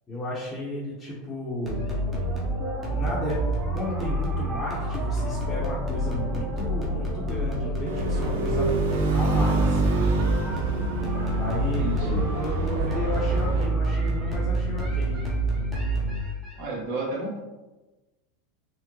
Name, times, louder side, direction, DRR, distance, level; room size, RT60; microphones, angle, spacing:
voice 1, 0.1-1.8 2.9-3.4 3.7-8.8 9.1-9.8 11.3-15.2, left 1 dB, 20° left, -8 dB, 0.9 m, -33 dB
sound 1, 1.7-16.6, right 1 dB, 15° right, 0.8 m, -27 dB
sound 2, 7.9-13.7, right 2 dB, 80° right, 0.5 m, -28 dB
voice 2, 11.8-12.3 16.6-17.4, right 2 dB, 60° right, -3 dB, 1.1 m, -31 dB
3.6 x 2.0 x 3.0 m, 1.1 s
supercardioid pair, 130°, 0 cm